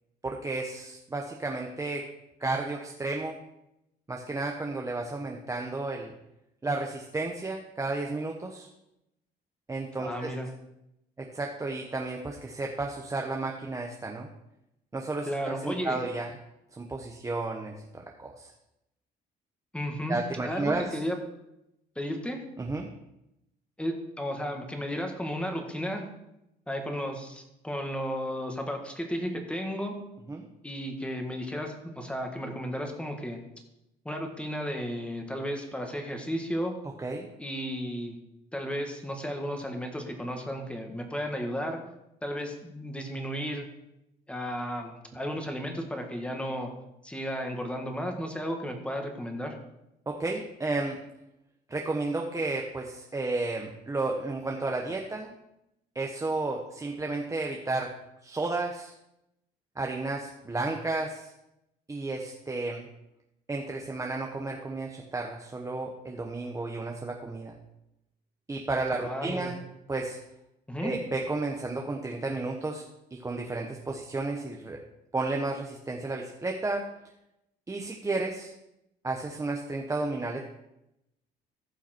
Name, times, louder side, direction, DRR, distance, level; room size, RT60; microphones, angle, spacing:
voice 1, 0.2-2.1 2.4-3.4 4.1-6.1 6.6-8.7 9.7-10.3 11.3-14.3 14.9-16.3 16.8-18.5 20.1-20.8 22.6-22.9 30.3-30.4 37.0-37.3 50.1-51.0 51.7-55.3 55.9-57.9 58.2-58.9 59.8-61.3 61.9-62.9 63.5-67.5 68.5-69.6 69.9-70.2 70.8-72.8 73.1-74.8 75.1-76.8 77.7-78.5 79.0-80.4, right 3 dB, 20° right, 1 dB, 1.0 m, -32 dB
voice 2, 10.0-10.5 15.3-16.0 19.7-20.2 20.4-21.2 22.0-22.4 23.8-26.0 26.7-30.0 30.6-33.4 34.1-36.7 37.4-38.2 38.5-41.8 42.2-43.7 44.3-46.7 47.0-49.6 69.0-69.5 70.7-70.9, equal, 5° left, 3 dB, 1.8 m, -33 dB
15.0 x 5.7 x 4.5 m, 0.86 s
cardioid pair, 110°, 17 cm